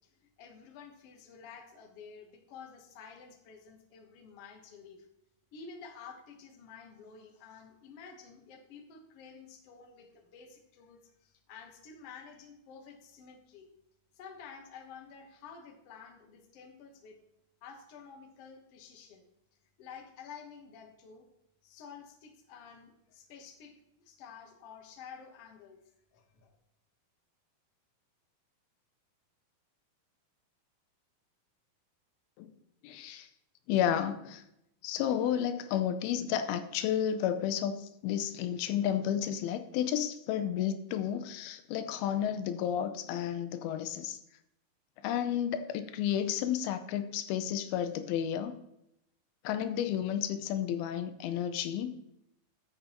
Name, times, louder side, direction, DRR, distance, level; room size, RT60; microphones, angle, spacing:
voice 1, 0.4-5.1 5.5-13.7 14.1-17.2 17.6-19.3 19.8-21.3 21.6-25.8 26.1-26.5, left 6 dB, 60° left, 3 dB, 1.7 m, -51 dB
voice 2, 32.8-33.3 33.7-34.4 34.8-44.2 45.0-48.5 49.4-51.9, left 10 dB, 85° left, 9 dB, 2.5 m, -32 dB
12.0 x 7.6 x 3.0 m, 0.81 s
omnidirectional pair, 4.3 m